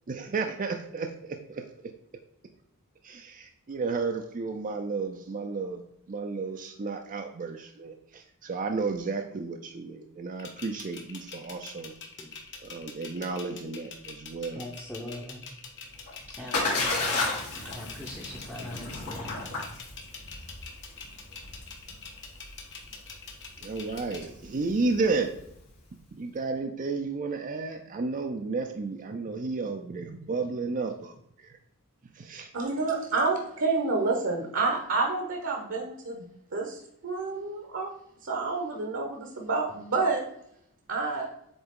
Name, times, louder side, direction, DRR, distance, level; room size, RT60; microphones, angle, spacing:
voice 1, 0.1-1.6 3.0-5.8 6.1-11.9 12.6-14.7 23.6-25.3 26.1-31.5 32.1-32.5, right 4 dB, 35° right, 4 dB, 0.4 m, -32 dB
sound 1, 10.4-24.2, left 5 dB, 55° left, 1.1 m, -44 dB
voice 2, 14.6-15.4 16.4-17.2 17.6-19.2, left 1 dB, 10° left, -4 dB, 0.7 m, -41 dB
Splash splatter, 15.8-25.7, left 3 dB, 85° left, 2.6 m, -34 dB
voice 3, 32.5-36.2 36.5-37.9 38.2-40.2 40.9-41.3, right 3 dB, 60° right, 1 dB, 0.9 m, -29 dB
7.9 x 3.4 x 3.7 m, 0.75 s
head